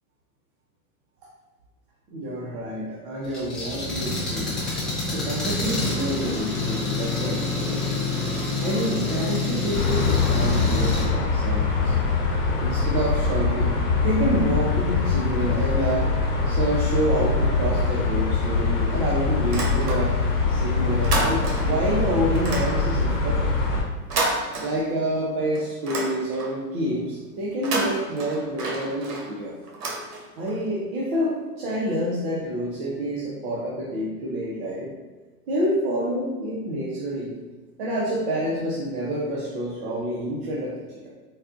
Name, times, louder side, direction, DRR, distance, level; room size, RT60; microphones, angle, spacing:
voice 1, 2.1-4.6 5.1-8.0 8.6-11.9 12.6-13.7 14.0-16.1 16.5-20.1 20.5-23.5 24.6-29.5 30.4-34.9 35.5-37.3 37.8-41.1, equal, 40° right, -6 dB, 0.7 m, -28 dB
Engine, 3.2-11.0, left 3 dB, ahead, 0.5 m, -27 dB
sound 1, 9.7-23.8, left 4 dB, 50° left, 1.2 m, -23 dB
sound 2, 19.4-20.4 20.7-21.8 22.3-25.2 25.5-26.7 27.5-30.6, right 2 dB, 85° right, 0.9 m, -30 dB
4.1 x 2.3 x 2.5 m, 1.3 s
hypercardioid pair, 130°, 46 cm